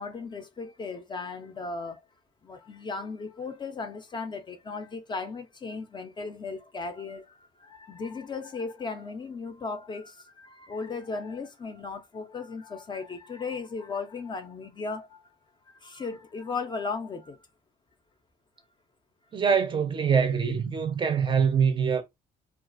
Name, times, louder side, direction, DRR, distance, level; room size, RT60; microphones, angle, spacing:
voice 1, 0.0-2.0 2.4-15.2 15.7-17.4, left 4 dB, 25° left, 0.4 m, -36 dB
voice 2, 19.3-22.0, right 6 dB, 30° right, 0.5 m, -24 dB
2.4 x 2.3 x 2.4 m
cardioid pair, 110°, 17 cm